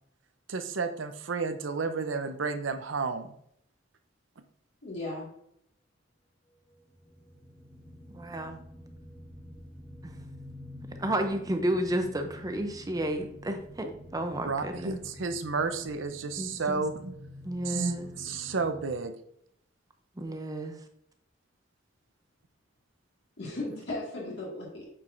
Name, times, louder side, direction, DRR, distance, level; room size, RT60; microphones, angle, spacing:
voice 1, 0.5-3.3 14.4-17.1 17.7-19.1, right 4 dB, 80° right, 9 dB, 0.6 m, -32 dB
voice 2, 4.8-5.3 23.4-24.8, left 2 dB, 65° left, -4 dB, 2.0 m, -36 dB
sound 1, 6.7-19.0, left 1 dB, 10° left, 1.9 m, -48 dB
voice 3, 8.1-8.6 10.0-10.2 11.0-15.0 16.4-16.8 17.4-18.1 20.2-20.8, right 1 dB, 20° right, 6 dB, 0.6 m, -32 dB
8.6 x 4.6 x 2.6 m, 0.72 s
head